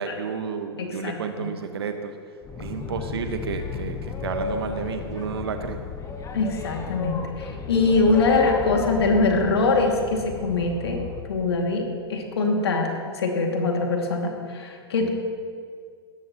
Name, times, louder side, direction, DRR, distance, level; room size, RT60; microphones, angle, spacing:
voice 1, 0.0-2.1 2.6-5.8, right 6 dB, 65° right, 7 dB, 1.3 m, -31 dB
voice 2, 0.8-1.5 6.3-11.0 11.3-15.1, left 3 dB, 70° left, 2 dB, 2.3 m, -23 dB
Boat Water vehicle, 2.4-11.2, left 5 dB, 20° left, 1.5 m, -33 dB
19.0 x 13.5 x 3.0 m, 2.1 s
figure-of-eight pair, 90°, 14 cm